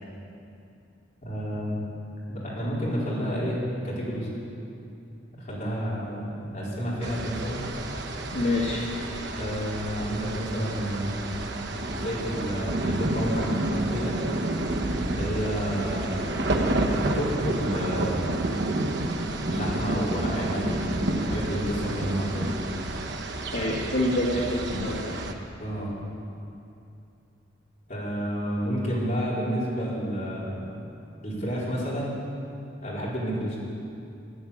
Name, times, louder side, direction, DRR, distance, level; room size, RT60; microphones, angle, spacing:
voice 1, 1.2-1.8 2.3-4.3 5.4-7.7 9.4-11.4 12.0-14.2 15.1-18.4 19.5-22.6 25.6-25.9 27.9-30.6 31.2-32.1 32.8-33.6, equal, 45° left, -7 dB, 4.6 m, -30 dB
sound 1, 7.0-25.3, right 1 dB, 65° right, 1.2 m, -30 dB
voice 2, 8.3-8.9 23.5-25.2, left 1 dB, 70° left, -7 dB, 2.2 m, -26 dB
14.5 x 10.0 x 8.8 m, 2.7 s
head